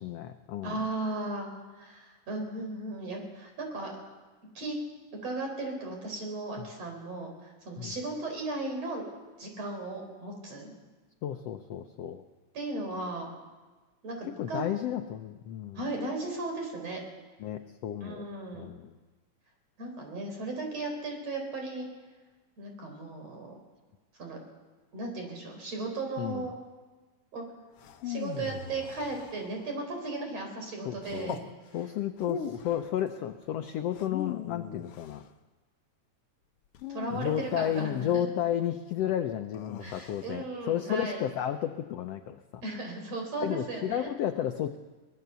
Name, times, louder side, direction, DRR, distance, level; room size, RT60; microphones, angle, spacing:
voice 1, 0.0-0.8 6.6-6.7 7.8-8.0 11.2-12.2 14.4-15.8 17.4-18.3 18.5-19.0 26.2-26.4 30.8-31.3 31.7-35.2 37.1-42.6 43.4-44.8, left 10 dB, 80° left, 7 dB, 1.4 m, -32 dB
voice 2, 0.6-1.5 1.7-3.9 4.6-4.8 5.2-9.0 9.4-10.7 12.5-13.3 14.0-14.7 15.8-17.0 18.0-18.6 19.8-21.9 22.6-23.5 24.2-24.4 24.9-26.6 27.3-27.4 28.0-31.4 36.9-38.2 39.8-41.3 42.6-44.1, right 2 dB, 50° right, 3 dB, 5.2 m, -36 dB
sound 1, 27.8-29.8 31.0-31.5 32.2-32.9 33.9-35.3 36.7-38.0 39.5-40.3, left 8 dB, 65° left, 1.5 m, -40 dB
23.5 x 19.5 x 6.9 m, 1.3 s
omnidirectional pair, 3.8 m